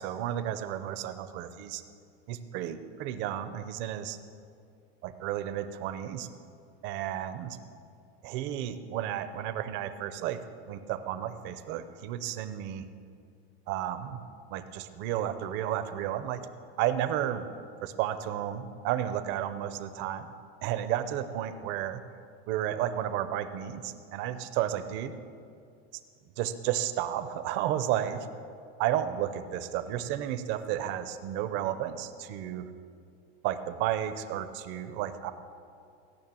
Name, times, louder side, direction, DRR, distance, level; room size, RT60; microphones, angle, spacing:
voice 1, 0.0-1.8 2.3-4.2 5.0-6.3 6.8-7.6 8.2-12.8 13.7-14.2 14.5-16.5 16.8-17.5 17.8-20.3 20.6-22.0 22.5-25.1 26.4-28.3 28.8-32.7 33.4-35.3, right 11 dB, 35° right, 10 dB, 0.7 m, -32 dB
16.0 x 6.5 x 9.0 m, 2.4 s
supercardioid pair, 180°, 32 cm